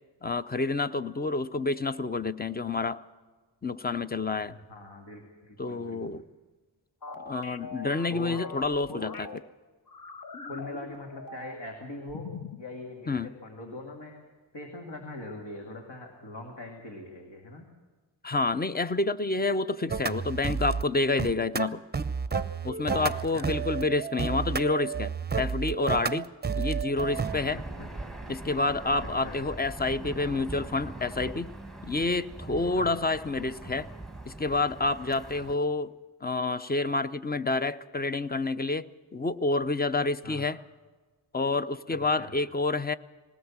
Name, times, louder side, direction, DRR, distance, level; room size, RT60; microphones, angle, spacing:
voice 1, 0.2-3.0 3.6-4.5 5.6-6.2 7.1-9.1 13.1-13.3 18.2-21.8 22.6-25.1 25.4-26.3 26.6-27.6 28.3-31.5 31.8-33.9 34.3-35.9 36.2-38.8 39.1-40.6 41.3-42.9, left 3 dB, 20° left, 14 dB, 0.6 m, -28 dB
voice 2, 4.5-6.2 8.1-8.5 8.9-9.2 10.4-12.3 12.6-14.2 14.5-17.7 23.0-23.5 27.8-27.9 29.2-29.4 32.8-33.0 40.2-40.4 41.9-42.4, left 2 dB, 65° left, 2 dB, 2.6 m, -42 dB
sound 1, 7.0-9.4 9.9-11.7 12.1-12.6, left 4 dB, 45° left, 1.1 m, -42 dB
sound 2, 19.9-20.8 21.2-27.4, right 5 dB, 20° right, 0.6 m, -31 dB
Aircraft / Engine, 27.0-35.5, right 2 dB, ahead, 1.3 m, -42 dB
20.0 x 18.0 x 7.3 m, 1.3 s
wide cardioid pair, 120°, 47 cm